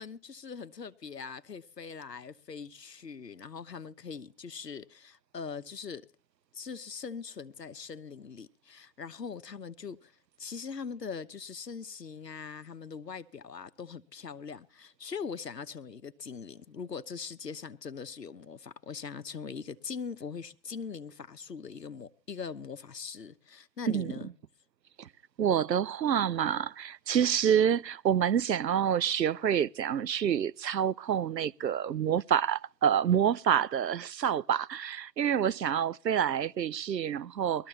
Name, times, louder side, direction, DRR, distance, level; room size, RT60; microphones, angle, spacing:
voice 1, 0.0-6.1 6.5-10.1 10.4-24.3, left 5 dB, 75° left, 1.0 m, -41 dB
voice 2, 25.4-37.7, right 9 dB, 85° right, 0.6 m, -27 dB
21.0 x 13.5 x 3.0 m
figure-of-eight pair, 135°, 49 cm